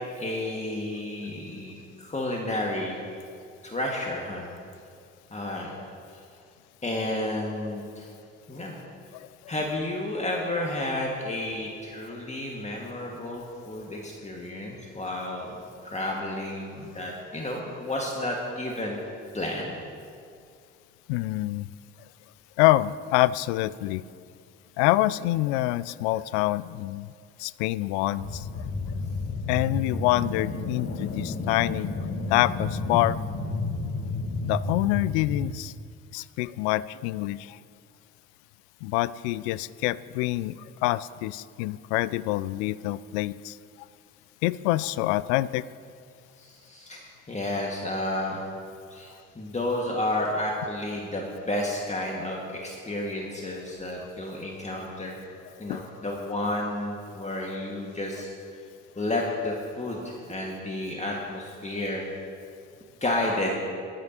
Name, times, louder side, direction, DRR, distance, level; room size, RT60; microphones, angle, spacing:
voice 1, 0.2-3.0 3.6-4.5 5.3-5.7 6.1-6.2 6.8-8.1 8.5-8.8 9.5-19.0 19.3-19.8 46.4-48.4 48.9-55.2 55.6-58.6 59.0-62.0 63.0-63.6, left 1 dB, 20° left, -2 dB, 1.9 m, -31 dB
voice 2, 21.1-21.7 22.6-24.0 24.8-27.1 27.4-28.5 29.5-31.9 32.3-33.2 34.4-35.7 36.1-37.6 38.8-43.6 44.4-45.7 55.7-55.8, left 17 dB, 65° left, 18 dB, 0.5 m, -26 dB
sound 1, 28.2-35.5, left 3 dB, 40° left, 1.4 m, -31 dB
19.5 x 12.5 x 2.9 m, 2.3 s
figure-of-eight pair, 50°, 37 cm